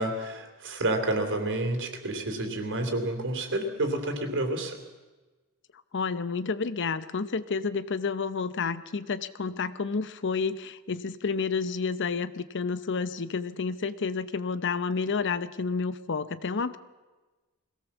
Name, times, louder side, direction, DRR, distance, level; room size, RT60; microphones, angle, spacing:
voice 1, 0.0-4.8, right 1 dB, 60° right, 5 dB, 3.2 m, -29 dB
voice 2, 5.9-16.8, left 5 dB, 55° left, 14 dB, 0.7 m, -30 dB
22.0 x 17.5 x 7.2 m, 1.2 s
head